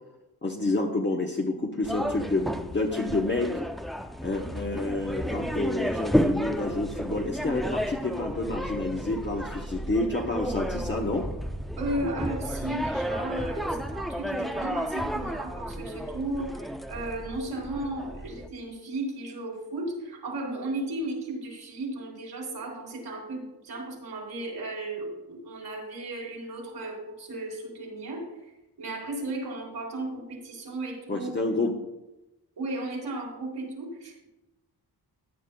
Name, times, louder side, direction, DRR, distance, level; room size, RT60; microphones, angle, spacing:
voice 1, 0.4-3.6 4.2-11.3 31.1-31.8, left 2 dB, 30° left, 0 dB, 0.9 m, -29 dB
sound 1, 1.8-18.5, equal, ahead, 0.4 m, -32 dB
voice 2, 11.8-28.5 28.8-31.3 32.6-34.3, right 2 dB, 80° right, 0 dB, 3.6 m, -35 dB
16.0 x 9.3 x 2.3 m, 1.0 s
wide cardioid pair, 115°, 40 cm